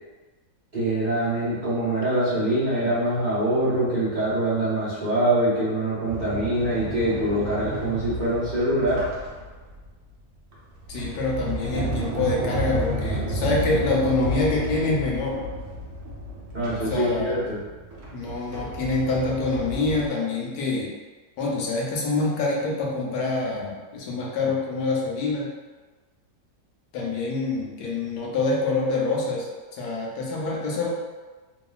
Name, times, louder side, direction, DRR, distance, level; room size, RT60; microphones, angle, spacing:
voice 1, 0.7-9.1 16.5-17.6, right 1 dB, 40° right, -11 dB, 0.8 m, -24 dB
Sliding door, 6.1-9.9 10.5-20.1, right 1 dB, 60° right, 0.9 m, -32 dB
voice 2, 10.9-15.4 16.9-17.4 18.1-20.9 21.4-25.5 26.9-30.9, left 3 dB, 90° left, -3 dB, 1.2 m, -26 dB
2.9 x 2.4 x 2.3 m, 1.3 s
omnidirectional pair, 1.7 m